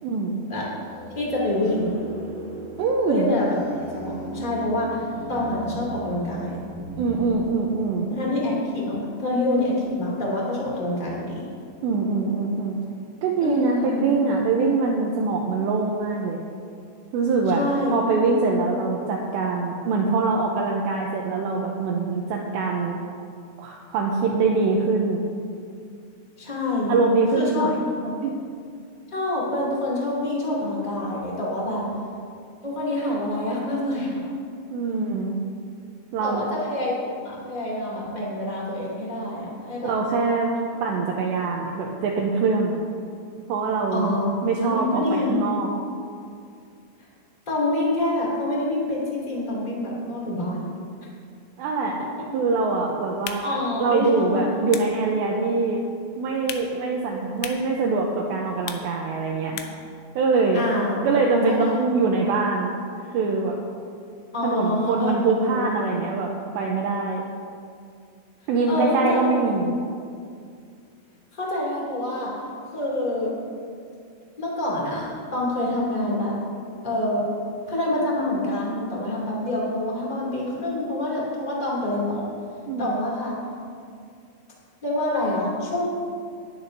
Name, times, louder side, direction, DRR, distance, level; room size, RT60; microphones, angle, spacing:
voice 1, 0.0-0.4 2.8-3.3 7.0-8.1 11.8-12.8 13.2-16.4 17.1-17.6 17.9-23.0 23.6-25.2 26.9-27.7 28.2-28.3 31.7-32.0 34.7-35.4 36.1-36.5 39.8-40.5 40.8-42.8 43.5-45.7 51.6-52.0 52.3-55.8 56.2-59.6 60.2-60.6 61.0-62.8 63.1-63.6 64.4-66.3 66.6-67.2 68.5-69.7 82.7-82.9, right 4 dB, 80° right, 0 dB, 2.6 m, -23 dB
sound 1, 0.8-7.3, right 2 dB, 60° right, 2.0 m, -38 dB
voice 2, 1.1-1.9 3.1-3.5 3.9-5.0 5.3-6.6 8.1-11.4 13.4-14.0 17.5-17.9 26.4-26.9 27.3-27.7 28.0-28.1 29.1-31.9 32.6-34.3 36.2-36.9 37.2-39.9 43.9-44.3 44.6-45.4 47.4-50.7 53.4-54.6 60.5-61.1 61.4-61.7 64.3-65.1 65.5-65.7 68.7-69.3 71.3-72.5 72.7-73.3 74.4-76.3 76.8-77.3 77.7-82.2 82.8-83.4 84.8-85.9, left 1 dB, 20° left, -5 dB, 1.2 m, -26 dB
sound 2, 53.1-60.0, left 9 dB, 85° left, 3.3 m, -41 dB
19.0 x 11.0 x 2.8 m, 2.3 s
omnidirectional pair, 5.9 m